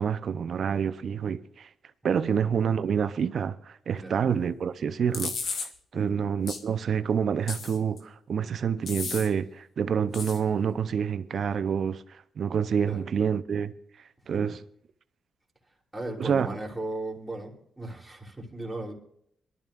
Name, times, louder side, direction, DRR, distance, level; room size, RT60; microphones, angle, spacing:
voice 1, 0.0-1.7 2.0-13.7 14.3-14.6 16.2-16.6, right 7 dB, 65° right, 0.7 m, -28 dB
sound 1, 5.1-5.7 6.5-6.6 7.5-8.0 8.9-9.3 10.1-10.4, left 5 dB, 75° left, 1.9 m, -33 dB
voice 2, 15.9-18.9, right 1 dB, 10° right, 3.3 m, -37 dB
22.5 x 12.5 x 2.5 m
cardioid pair, 75°, 0 cm